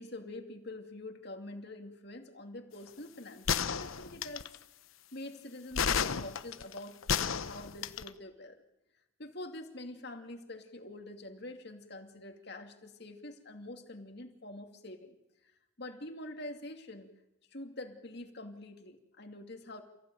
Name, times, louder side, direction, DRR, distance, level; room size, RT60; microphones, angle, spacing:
voice 1, 0.0-4.5 5.1-8.5 9.2-15.2 15.8-17.1 17.5-19.8, left 1 dB, 55° left, 5 dB, 2.4 m, -45 dB
sound 1, 3.5-4.6 5.8-8.1, left 7 dB, 90° left, 0.9 m, -31 dB
29.0 x 15.5 x 9.2 m, 0.96 s
head